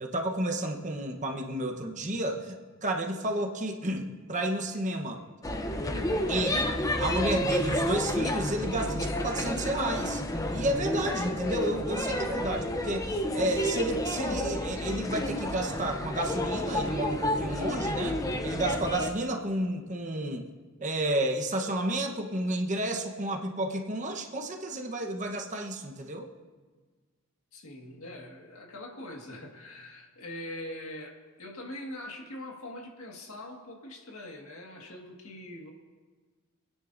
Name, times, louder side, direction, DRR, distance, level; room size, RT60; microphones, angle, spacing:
voice 1, 0.0-2.6 2.8-5.2 6.3-6.7 7.0-10.2 10.5-20.5 20.8-26.3, right 1 dB, 35° right, 3 dB, 1.0 m, -31 dB
sound 1, 5.4-19.1, left 1 dB, 15° left, 0.6 m, -30 dB
voice 2, 27.5-35.7, left 1 dB, 90° left, 1 dB, 1.8 m, -43 dB
27.5 x 9.9 x 2.6 m, 1.4 s
head